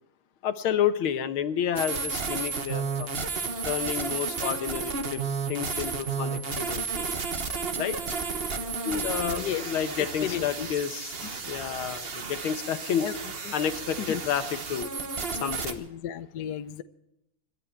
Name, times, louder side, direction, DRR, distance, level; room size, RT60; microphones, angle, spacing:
voice 1, 0.4-3.1 3.6-5.2 5.5-7.1 7.8-8.0 8.8-13.1 13.5-14.9 15.4-15.8, left 8 dB, 85° left, 11 dB, 1.9 m, -30 dB
sound 1, 1.8-15.7, right 5 dB, 35° right, 1.2 m, -32 dB
voice 2, 9.3-9.6 10.0-10.7 13.0-13.1 13.4-13.5 14.1-14.2 15.8-16.8, left 10 dB, 60° left, 11 dB, 1.2 m, -33 dB
27.0 x 11.5 x 4.5 m, 0.83 s
omnidirectional pair, 2.3 m